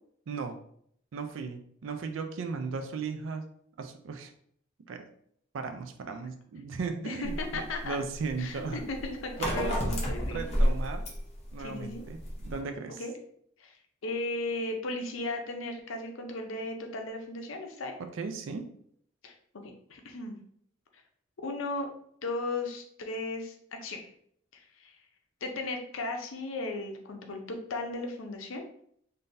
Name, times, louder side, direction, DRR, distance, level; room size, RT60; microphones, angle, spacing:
voice 1, 0.3-0.6 1.1-3.4 3.8-4.3 4.9-5.1 5.5-8.8 9.4-9.8 10.3-11.0 11.5-13.0 18.1-18.7, right 4 dB, 75° right, 7 dB, 0.4 m, -36 dB
voice 2, 7.0-8.0 8.4-10.4 11.6-12.0 13.0-13.1 13.6-13.7 14.0-18.0 19.2-19.3 19.6-20.4 21.4-21.9 22.2-24.0 24.5-24.9 25.4-28.6, left 2 dB, 85° left, 4 dB, 0.6 m, -36 dB
sound 1, 7.2-12.6, equal, 35° left, 0.7 m, -31 dB
3.7 x 2.6 x 2.6 m, 0.66 s
head